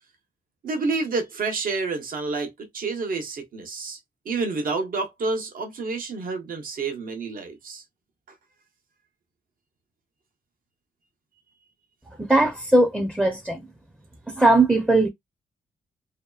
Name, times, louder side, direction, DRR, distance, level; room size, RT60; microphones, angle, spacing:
voice 1, 0.6-4.0 4.2-7.8, right 3 dB, 70° right, 0.9 m, -29 dB
voice 2, 12.1-13.6 14.4-15.1, right 2 dB, 5° right, 0.5 m, -19 dB
2.7 x 2.2 x 2.3 m
cardioid pair, 85°, 15 cm